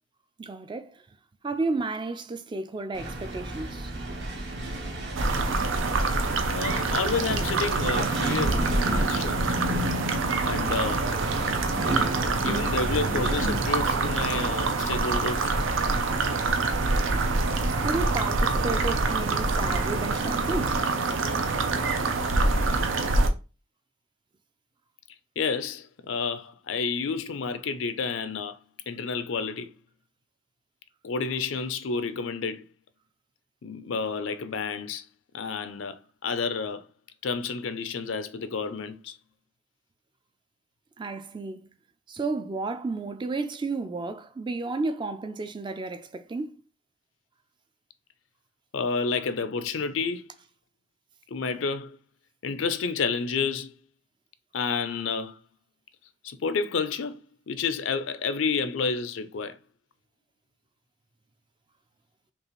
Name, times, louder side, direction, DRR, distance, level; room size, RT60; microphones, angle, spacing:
voice 1, 0.4-1.0 1.4-3.9 17.8-20.8 41.0-41.7 42.1-46.5, right 3 dB, 25° right, 0.3 m, -32 dB
sound 1, 2.9-14.5, right 1 dB, 60° right, 1.1 m, -32 dB
sound 2, 5.2-23.3, right 3 dB, 90° right, 0.6 m, -26 dB
voice 2, 6.5-9.6 10.4-11.2 12.4-15.5 25.4-28.6 28.9-29.7 31.0-32.6 33.6-35.1 35.3-36.9 37.2-39.2 48.7-50.3 51.3-52.0 52.4-53.7 54.5-55.4 56.2-57.2 57.5-59.6, left 5 dB, 90° left, 0.5 m, -30 dB
5.3 x 2.4 x 3.0 m
head